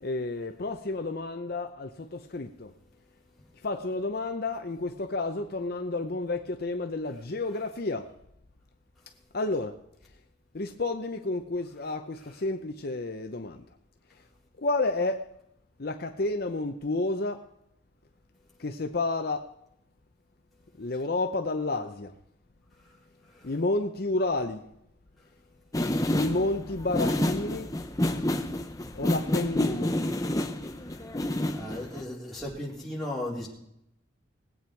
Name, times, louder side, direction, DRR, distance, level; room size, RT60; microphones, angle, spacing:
voice 1, 0.0-2.7 3.6-8.1 9.3-9.8 10.5-13.6 14.6-15.3 15.8-17.5 18.6-19.5 20.8-22.1 23.4-24.7 26.1-27.7 29.0-29.9, left 2 dB, 50° left, 0.7 m, -30 dB
sound 1, 25.7-32.0, left 1 dB, 15° left, 0.8 m, -29 dB
voice 2, 31.5-33.5, left 1 dB, ahead, 3.9 m, -36 dB
20.0 x 8.7 x 4.6 m
head